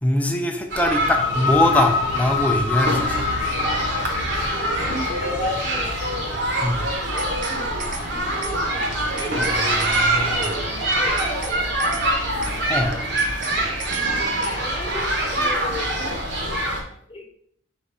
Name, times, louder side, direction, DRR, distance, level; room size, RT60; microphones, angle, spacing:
voice 1, 0.0-3.3 6.6-6.8 9.3-10.6 12.7-13.0, left 1 dB, 10° left, 3 dB, 0.5 m, -23 dB
sound 1, 0.7-16.8, right 1 dB, 65° right, 0.9 m, -24 dB
sound 2, 0.8-8.3, left 6 dB, 85° left, 0.5 m, -28 dB
voice 2, 4.8-6.3 7.0-8.3 10.8-12.0 14.4-16.7 17.1-17.4, left 1 dB, 30° left, -1 dB, 0.9 m, -37 dB
sound 3, 7.2-7.5 7.8-8.0 8.4-8.5 8.9-9.5 9.8-10.0 10.4-10.5 10.9-11.5 11.8-12.0 12.4-12.5 12.9-13.5 13.8-14.0 14.4-14.5, right 4 dB, 45° right, 0.5 m, -35 dB
4.9 x 2.3 x 4.1 m, 0.65 s
head